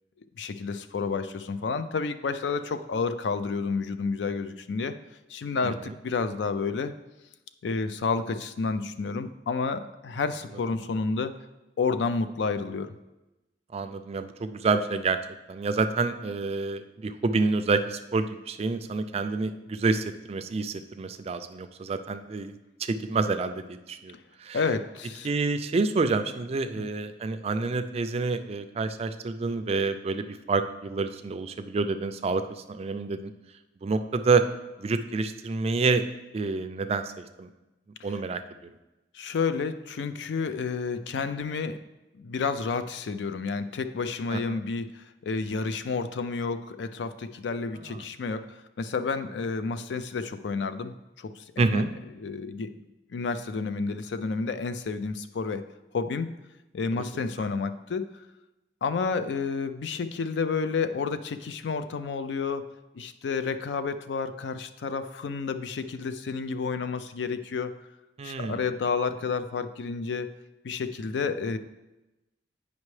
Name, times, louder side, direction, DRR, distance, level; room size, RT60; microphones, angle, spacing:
voice 1, 0.4-5.0 5.3-6.9 7.6-11.4 11.8-12.9 24.5-25.3 26.8-26.9 39.1-41.8 42.1-51.8 52.1-52.7 53.1-55.7 55.9-56.3 56.7-58.0 58.8-67.8 68.2-70.3 70.6-71.6, left 4 dB, 75° left, 12 dB, 0.4 m, -30 dB
voice 2, 13.7-15.2 15.5-24.1 24.4-24.6 25.2-32.4 32.7-33.3 33.8-34.4 34.8-36.0 36.3-37.1 37.4-37.5 38.0-38.4 44.3-44.6 47.9-48.0 51.6-51.9 56.9-57.0 68.2-68.6, right 4 dB, 35° right, 9 dB, 0.3 m, -28 dB
8.4 x 5.2 x 3.2 m, 1.0 s
head